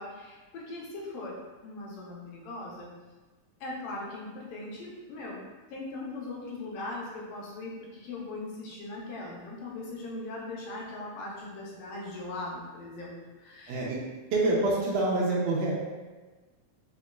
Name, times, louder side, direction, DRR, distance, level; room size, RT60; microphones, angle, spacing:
voice 1, 0.0-2.9 3.6-5.4 5.7-13.8, left 2 dB, 85° left, -4 dB, 2.3 m, -40 dB
voice 2, 13.7-14.0 14.3-15.7, right 2 dB, 80° right, -4 dB, 2.0 m, -26 dB
6.0 x 2.2 x 2.3 m, 1.3 s
omnidirectional pair, 3.7 m